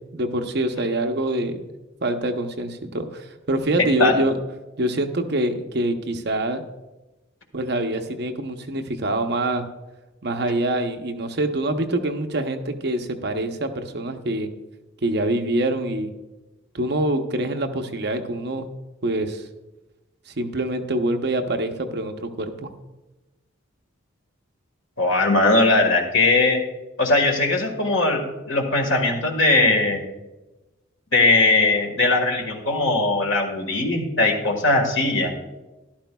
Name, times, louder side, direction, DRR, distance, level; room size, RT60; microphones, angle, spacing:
voice 1, 0.0-1.7 2.0-4.4 4.8-6.6 7.5-9.7 10.2-14.5 15.0-16.1 16.7-18.7 19.0-19.4 20.3-22.7, right 1 dB, 50° right, 5 dB, 0.7 m, -25 dB
voice 2, 25.0-26.6 27.0-30.0 31.1-35.3, left 2 dB, 70° left, 3 dB, 1.5 m, -19 dB
13.0 x 12.0 x 2.3 m, 1.1 s
head